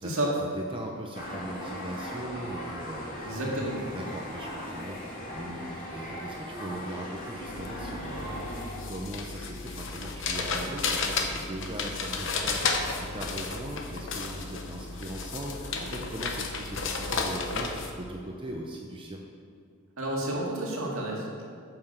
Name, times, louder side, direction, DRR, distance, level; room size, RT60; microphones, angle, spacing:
voice 1, 0.0-0.4 3.2-3.8 20.0-21.4, right 1 dB, 70° right, -3 dB, 1.9 m, -30 dB
voice 2, 0.5-3.4 3.9-8.5 8.9-17.7 18.0-19.2, right 1 dB, 25° right, 1 dB, 0.6 m, -39 dB
sound 1, 1.1-8.8, equal, 35° left, 2.1 m, -38 dB
sound 2, 7.5-17.9, left 4 dB, 60° left, 0.9 m, -33 dB
8.9 x 5.9 x 6.7 m, 2.3 s
head